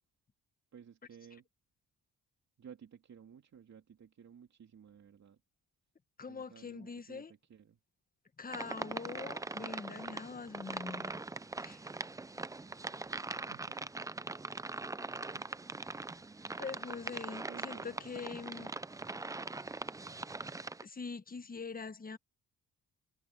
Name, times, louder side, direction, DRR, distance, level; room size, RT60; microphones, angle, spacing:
voice 1, 0.7-1.4 2.6-5.4 6.2-7.8 13.5-14.1 15.3-15.5 17.5-18.1, right 8 dB, 50° right, 2.8 m, -55 dB
voice 2, 6.2-7.3 8.4-11.2 11.6-11.9 16.6-18.7 20.8-22.2, left 4 dB, 25° left, 1.3 m, -43 dB
sound 1, 8.5-20.8, right 3 dB, 10° right, 0.4 m, -42 dB
cardioid pair, 115°, 34 cm